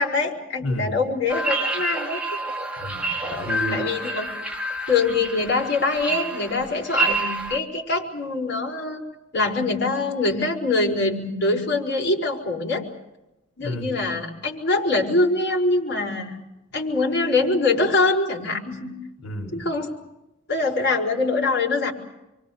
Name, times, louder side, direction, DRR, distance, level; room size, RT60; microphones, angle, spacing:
voice 1, 0.0-2.2 3.7-4.3 4.9-9.0 9.3-12.9 13.6-16.4 16.7-18.9 19.5-19.9 20.5-21.9, left 3 dB, 55° left, -1 dB, 5.4 m, -23 dB
voice 2, 0.6-1.0 2.8-3.8 13.6-14.0 19.2-19.6, equal, 75° left, 2 dB, 3.9 m, -31 dB
sound 1, 1.3-7.6, right 2 dB, 5° right, 2.4 m, -28 dB
28.0 x 24.5 x 6.8 m, 0.93 s
head